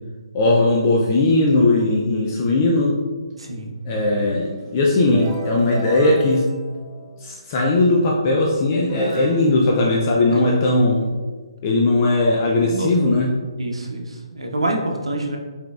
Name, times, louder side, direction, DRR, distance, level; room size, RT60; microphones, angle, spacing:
voice 1, 0.3-3.0 3.9-6.5 7.2-11.1 11.6-13.3, left 2 dB, 30° left, -2 dB, 0.4 m, -18 dB
voice 2, 3.4-3.7 10.3-10.6 12.7-12.9 13.6-15.4, right 1 dB, 80° right, 1 dB, 0.7 m, -26 dB
sound 1, 3.7-7.5 8.3-8.4 8.8-10.8, right 2 dB, 25° right, 0.5 m, -36 dB
4.3 x 3.8 x 2.4 m, 1.4 s
figure-of-eight pair, 140°, 3 cm